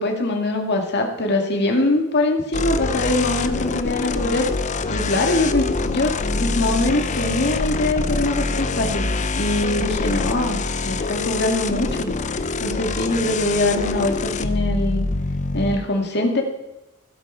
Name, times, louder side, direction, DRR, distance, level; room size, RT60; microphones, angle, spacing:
voice 1, 0.0-4.4 4.9-9.1 9.4-12.2 12.6-15.1 15.5-16.4, left 2 dB, 50° left, 2 dB, 2.1 m, -22 dB
sound 1, 2.5-15.8, left 3 dB, 35° left, 0.6 m, -25 dB
15.5 x 8.2 x 5.6 m, 0.97 s
head